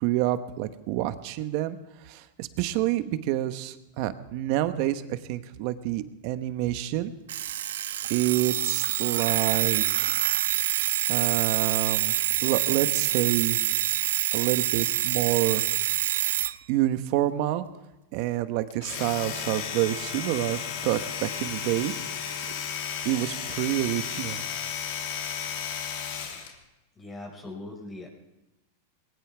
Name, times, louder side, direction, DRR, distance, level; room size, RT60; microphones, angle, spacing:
voice 1, 0.0-1.8 2.0-7.1 8.1-10.2 11.1-12.1 12.4-13.6 14.3-15.6 16.7-17.6 18.1-21.9 23.0-24.4, right 14 dB, 55° right, 11 dB, 1.2 m, -28 dB
Alarm, 7.3-16.6, right 12 dB, 80° right, 0.5 m, -26 dB
Domestic sounds home sounds, 18.7-26.6, left 7 dB, 60° left, 3.3 m, -34 dB
voice 2, 27.0-28.1, left 2 dB, 20° left, 0 dB, 5.5 m, -40 dB
20.5 x 18.5 x 3.5 m, 1.0 s
supercardioid pair, 125°, 0 cm